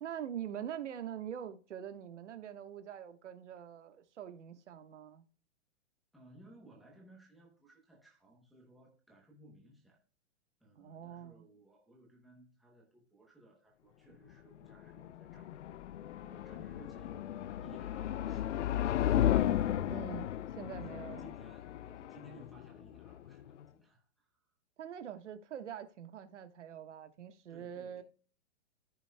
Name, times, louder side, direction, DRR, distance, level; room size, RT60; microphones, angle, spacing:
voice 1, 0.0-5.2 10.8-11.4 19.9-20.3 20.6-21.2 24.8-28.0, right 9 dB, 85° right, 1.4 m, -44 dB
voice 2, 6.1-10.0 10.6-15.6 16.2-19.1 20.7-24.5 27.5-28.0, right 2 dB, ahead, 0.9 m, -60 dB
sound 1, 14.6-23.6, left 11 dB, 80° left, 0.6 m, -34 dB
14.5 x 5.8 x 2.2 m
hypercardioid pair, 175°, 35 cm